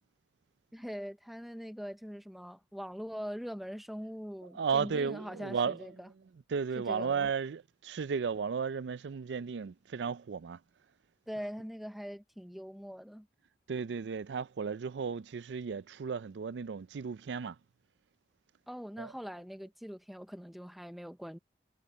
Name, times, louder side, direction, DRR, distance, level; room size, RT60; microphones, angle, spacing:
voice 1, 0.7-6.1 6.9-7.3 11.3-13.3 18.7-21.4, equal, ahead, 0.5 m, -42 dB
voice 2, 4.5-6.1 6.5-10.6 13.7-17.6 19.0-19.1, right 6 dB, 80° right, 0.4 m, -34 dB
head